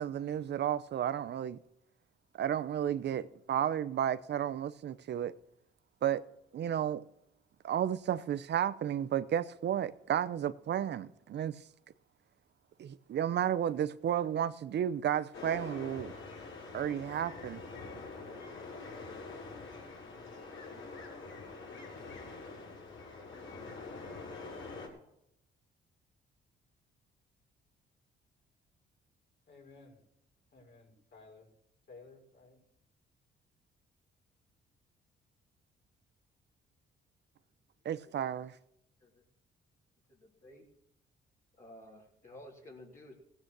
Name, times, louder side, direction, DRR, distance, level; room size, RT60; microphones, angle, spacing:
voice 1, 0.0-1.6 2.3-5.3 6.0-6.2 6.5-7.0 7.6-11.5 12.8-16.1 16.7-17.6 37.8-38.5, right 10 dB, 60° right, 0.8 m, -32 dB
sound 1, 15.3-24.9, left 3 dB, 80° left, 6.1 m, -45 dB
voice 2, 29.5-30.0 30.5-31.5 31.9-32.6, left 3 dB, 60° left, 6.1 m, -56 dB
voice 3, 37.9-38.3 39.0-39.2 40.1-40.7 41.5-43.1, left 1 dB, 40° left, 3.4 m, -53 dB
16.5 x 8.8 x 6.3 m
cardioid pair, 90°, 20 cm